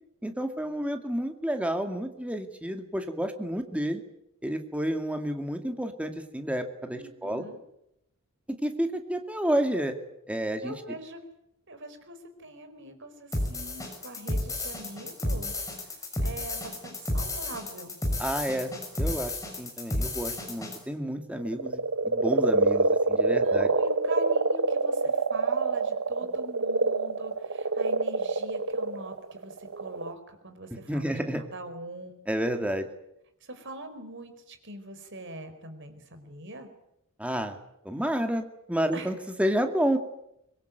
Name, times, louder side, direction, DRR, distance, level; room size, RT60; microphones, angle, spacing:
voice 1, 0.2-4.0 4.4-7.5 8.6-10.0 10.3-10.7 18.2-18.7 19.0-23.7 30.9-31.4 32.3-32.9 37.2-37.6 37.8-40.0, equal, 5° right, 6 dB, 2.2 m, -30 dB
voice 2, 6.9-7.6 10.6-11.2 11.7-18.0 23.3-32.2 33.4-36.7 38.9-39.1, right 1 dB, 55° right, 8 dB, 4.7 m, -42 dB
sound 1, 13.3-20.8, left 1 dB, 15° left, 6.5 m, -32 dB
sound 2, 21.4-30.1, right 3 dB, 75° right, 1.3 m, -26 dB
24.5 x 22.0 x 9.2 m, 0.81 s
head